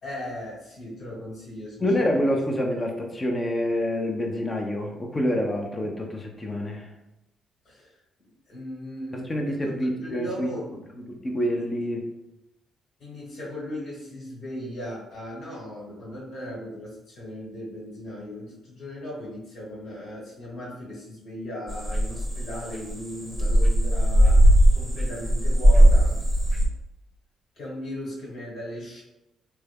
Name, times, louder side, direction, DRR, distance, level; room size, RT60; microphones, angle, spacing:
voice 1, 0.0-2.2 7.6-7.9 8.5-9.7 10.0-10.7 13.0-24.5 24.7-26.2 27.5-29.0, left 1 dB, 75° left, -4 dB, 1.5 m, -37 dB
voice 2, 1.8-6.9 9.1-10.5 11.0-12.1, equal, 25° left, 1 dB, 0.6 m, -27 dB
sound 1, 21.7-26.7, equal, 10° right, 0.8 m, -18 dB
3.4 x 2.2 x 3.4 m, 0.93 s
cardioid pair, 90°, 0 cm